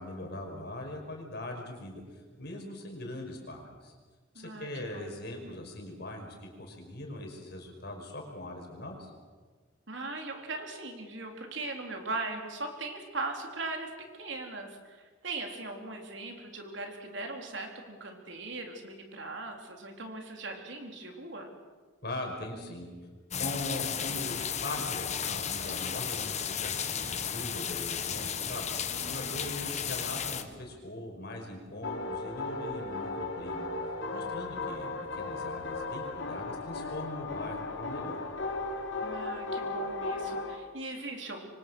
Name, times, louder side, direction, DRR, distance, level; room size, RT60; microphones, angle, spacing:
voice 1, 0.0-3.9 4.3-9.1 22.0-22.9 23.3-33.7 34.1-38.2, left 1 dB, 55° left, 2 dB, 5.5 m, -41 dB
voice 2, 4.3-5.2 9.9-13.9 14.2-21.5 28.9-29.4 30.0-30.1 39.0-41.5, right 3 dB, 70° right, 3 dB, 4.0 m, -39 dB
sound 1, 23.3-30.4, left 7 dB, 35° left, 1.5 m, -34 dB
sound 2, 31.8-40.6, left 3 dB, 80° left, 2.9 m, -36 dB
27.0 x 24.5 x 6.4 m, 1.5 s
head